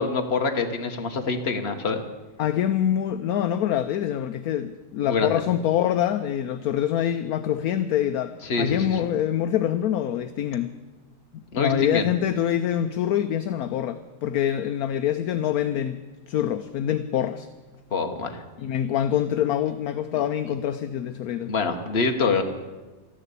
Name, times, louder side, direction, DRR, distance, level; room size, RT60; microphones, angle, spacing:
voice 1, 0.0-2.0 5.0-5.4 8.4-9.0 11.5-12.1 17.9-18.4 20.1-20.2 21.4-22.4, left 4 dB, 40° left, 5 dB, 1.4 m, -25 dB
voice 2, 2.4-10.8 11.3-17.5 18.6-21.5, left 10 dB, 65° left, 10 dB, 1.0 m, -25 dB
13.5 x 11.0 x 8.4 m, 1.2 s
omnidirectional pair, 1.9 m